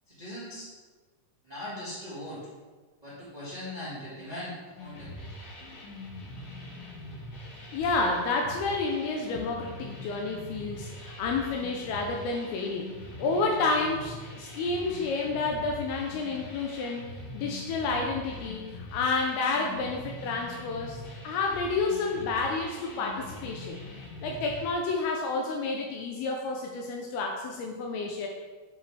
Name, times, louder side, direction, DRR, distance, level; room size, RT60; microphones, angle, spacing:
voice 1, 0.1-0.7 1.4-2.4 3.0-5.4 6.6-6.7, left 1 dB, 70° right, -10 dB, 0.4 m, -40 dB
sound 1, 4.8-24.7, left 1 dB, 65° left, 2.9 m, -43 dB
voice 2, 7.7-12.9 13.2-17.1 17.3-21.0 21.2-23.8 24.2-28.3, left 3 dB, 80° left, 1 dB, 2.5 m, -30 dB
8.0 x 5.4 x 3.3 m, 1.3 s
omnidirectional pair, 4.5 m